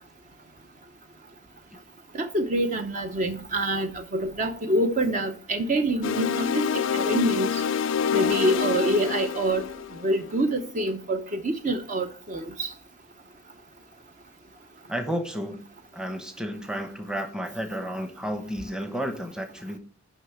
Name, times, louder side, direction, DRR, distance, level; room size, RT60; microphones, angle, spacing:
voice 1, 2.1-6.6 6.9-7.6 8.1-9.6 10.0-12.7, right 1 dB, 35° right, 0.7 m, -26 dB
sound 1, 6.0-10.4, left 7 dB, 60° left, 0.4 m, -27 dB
voice 2, 14.9-15.6 15.9-19.8, equal, 5° right, 0.9 m, -32 dB
6.6 x 5.5 x 7.0 m
head